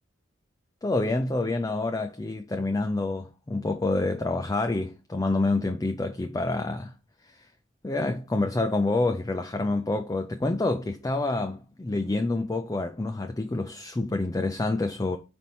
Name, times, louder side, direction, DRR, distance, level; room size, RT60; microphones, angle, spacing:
voice 1, 0.8-6.9 7.3-7.4 7.8-15.2, left 2 dB, 15° left, 0.4 m, -27 dB
5.4 x 4.3 x 4.1 m
head